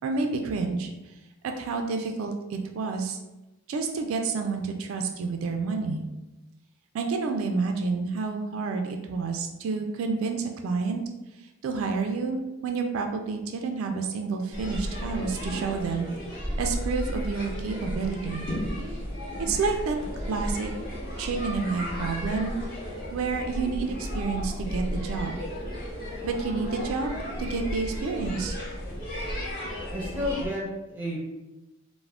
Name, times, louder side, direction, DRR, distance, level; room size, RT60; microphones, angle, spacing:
voice 1, 0.0-0.9 1.4-3.2 3.7-6.0 6.9-11.0 11.6-16.1 16.6-18.5 19.4-20.0 20.3-20.7 21.2-22.5 23.1-25.3 26.2-28.6, right 4 dB, 70° right, 4 dB, 0.3 m, -29 dB
sound 1, 14.5-30.5, equal, 45° left, 0.7 m, -34 dB
voice 2, 29.9-31.2, left 1 dB, 10° right, -4 dB, 0.6 m, -31 dB
2.3 x 2.1 x 3.3 m, 1.0 s
head